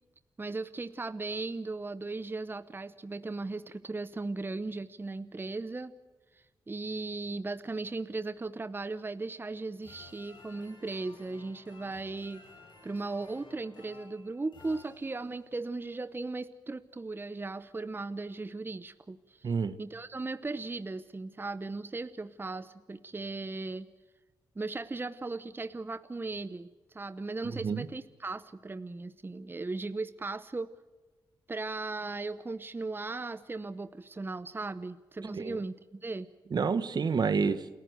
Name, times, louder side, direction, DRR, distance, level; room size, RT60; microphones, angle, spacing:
voice 1, 0.4-5.9 6.3-12.4 12.8-19.5 19.8-23.9 24.6-30.7 31.5-36.3, right 3 dB, 25° right, 13 dB, 0.8 m, -37 dB
sound 1, 9.8-15.5, left 3 dB, 80° left, 7.6 m, -55 dB
voice 2, 19.4-19.7 27.4-27.9 35.3-35.6 36.5-37.7, right 5 dB, 60° right, 13 dB, 1.3 m, -29 dB
28.5 x 14.5 x 8.0 m, 1.3 s
cardioid pair, 60°, 8 cm